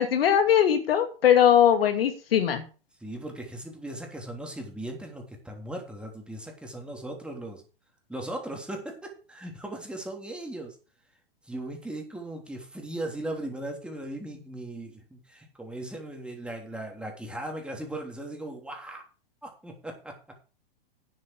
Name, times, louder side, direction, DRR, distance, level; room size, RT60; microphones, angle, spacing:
voice 1, 0.0-2.6, left 9 dB, 75° left, 7 dB, 2.6 m, -20 dB
voice 2, 3.0-7.6 8.1-10.7 11.4-19.0 19.4-20.2, right 1 dB, 5° right, 1 dB, 3.4 m, -38 dB
9.6 x 8.3 x 6.1 m, 0.35 s
hypercardioid pair, 115°, 29 cm